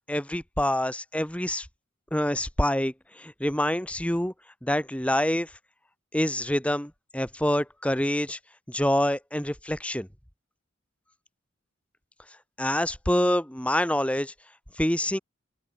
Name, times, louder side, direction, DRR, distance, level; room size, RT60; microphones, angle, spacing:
voice 1, 0.1-1.7 2.1-4.3 4.6-5.5 6.1-8.4 8.7-10.1 12.6-14.3 14.8-15.2, left 1 dB, 5° left, 1.6 m, -26 dB
open air
head